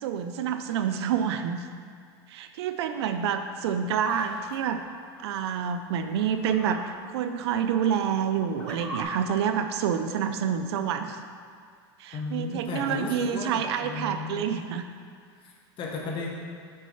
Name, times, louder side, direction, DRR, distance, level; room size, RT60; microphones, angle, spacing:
voice 1, 0.0-1.6 2.3-4.8 5.2-11.2 12.0-14.8, right 8 dB, 80° right, 8 dB, 0.5 m, -28 dB
sound 1, 4.0-5.2 6.2-6.8 7.3-7.4 8.1-9.0, equal, 10° left, 1.1 m, -42 dB
voice 2, 12.1-14.6 15.4-16.3, left 3 dB, 40° left, -2 dB, 1.2 m, -35 dB
6.6 x 4.2 x 5.5 m, 2.1 s
supercardioid pair, 120°, 14 cm